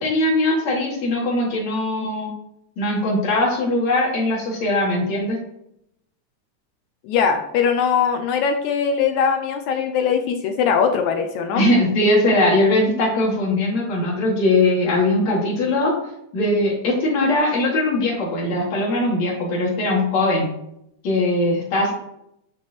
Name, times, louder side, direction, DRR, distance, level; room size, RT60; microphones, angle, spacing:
voice 1, 0.0-2.3 2.8-5.4 11.5-15.9 16.3-20.5 21.0-21.9, left 1 dB, 60° left, -4 dB, 3.0 m, -20 dB
voice 2, 7.0-11.7, left 6 dB, 80° left, 6 dB, 1.8 m, -21 dB
10.0 x 3.7 x 2.9 m, 0.79 s
omnidirectional pair, 3.7 m